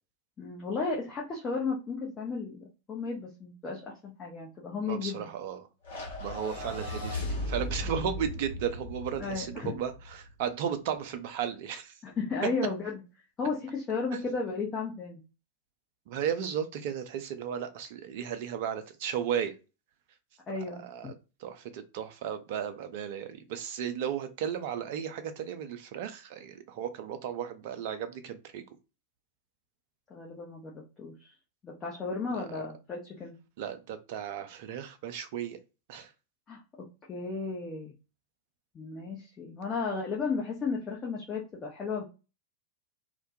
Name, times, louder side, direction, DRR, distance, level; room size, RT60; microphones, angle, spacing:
voice 1, 0.4-5.3 7.8-7.9 9.2-9.7 12.0-13.0 13.4-15.2 20.5-20.8 30.1-30.7 31.0-31.1 31.6-33.3 36.5-36.6 37.1-37.9 38.7-42.0, left 4 dB, 25° left, 0.7 m, -34 dB
voice 2, 4.8-5.7 5.9-11.9 14.1-14.2 16.1-19.5 20.8-21.1 21.4-28.6 32.3-32.6 33.6-35.6 35.9-36.1, right 8 dB, 50° right, 0.4 m, -35 dB
sound 1, 5.8-10.3, left 1 dB, 60° left, 0.9 m, -37 dB
2.2 x 2.1 x 2.7 m
figure-of-eight pair, 90°, 0 cm